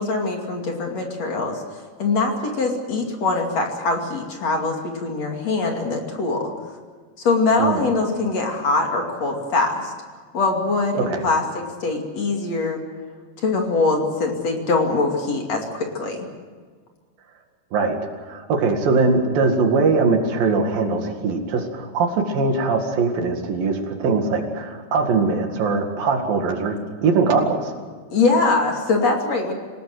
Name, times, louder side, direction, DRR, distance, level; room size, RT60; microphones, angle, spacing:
voice 1, 0.0-6.5 7.2-9.9 10.3-11.4 11.8-12.8 13.4-16.3 28.1-29.5, left 3 dB, 45° left, 2 dB, 3.4 m, -22 dB
voice 2, 7.6-7.9 11.0-11.3 17.7-18.0 18.3-27.7, right 4 dB, 65° right, 4 dB, 3.7 m, -21 dB
27.0 x 18.5 x 7.9 m, 1.5 s
omnidirectional pair, 4.4 m